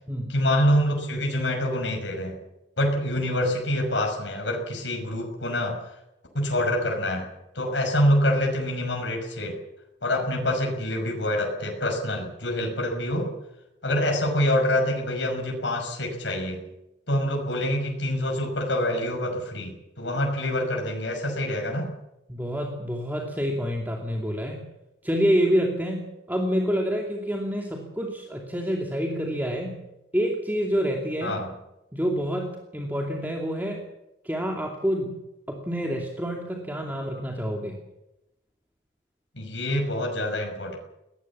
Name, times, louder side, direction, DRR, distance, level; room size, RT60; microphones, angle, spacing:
voice 1, 0.3-2.4 2.8-5.8 6.3-9.6 10.0-13.3 13.8-16.7 17.1-21.9 31.2-31.5 39.4-40.8, left 1 dB, 75° left, 1 dB, 6.0 m, -26 dB
voice 2, 22.3-24.6 25.0-29.7 30.1-31.4 31.9-33.8 34.2-35.2 35.5-37.8, equal, 10° right, 0 dB, 2.6 m, -27 dB
22.5 x 19.0 x 7.4 m, 0.90 s
head